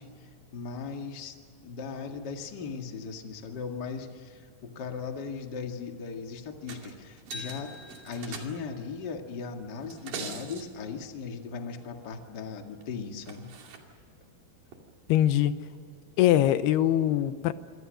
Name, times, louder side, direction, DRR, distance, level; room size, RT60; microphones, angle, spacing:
voice 1, 0.0-1.4 1.6-7.7 8.0-13.5, left 5 dB, 35° left, 4 dB, 1.8 m, -38 dB
sound 1, 6.7-6.9 7.2-8.8 9.8-10.6 12.8-12.9 13.3-13.8 14.7-14.8, right 3 dB, 60° right, 4.1 m, -41 dB
voice 2, 15.1-15.6 16.2-17.5, left 12 dB, 85° left, 12 dB, 2.9 m, -22 dB
27.0 x 25.0 x 6.5 m, 2.1 s
omnidirectional pair, 4.5 m